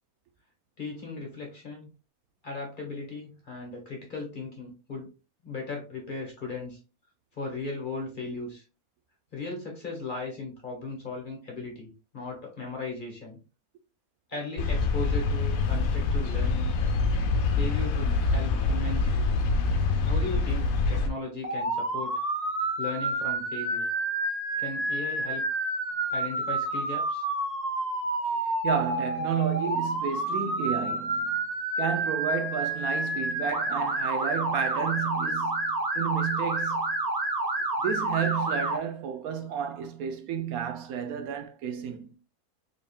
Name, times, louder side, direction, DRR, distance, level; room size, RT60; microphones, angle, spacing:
voice 1, 0.8-1.9 2.4-5.1 5.4-6.8 7.3-8.6 9.3-13.4 14.3-16.7 17.5-19.3 20.0-22.1 22.8-23.8 24.6-25.4 26.1-27.2, left 3 dB, 35° left, 1.2 m, -37 dB
sound 1, 14.6-21.1, left 3 dB, 75° left, 1.0 m, -25 dB
Motor vehicle (road) / Siren, 21.4-38.8, right 2 dB, 35° right, 0.8 m, -29 dB
voice 2, 28.6-31.4 31.8-37.0 37.8-42.2, right 8 dB, 80° right, 1.1 m, -31 dB
3.8 x 3.6 x 2.3 m
omnidirectional pair, 1.6 m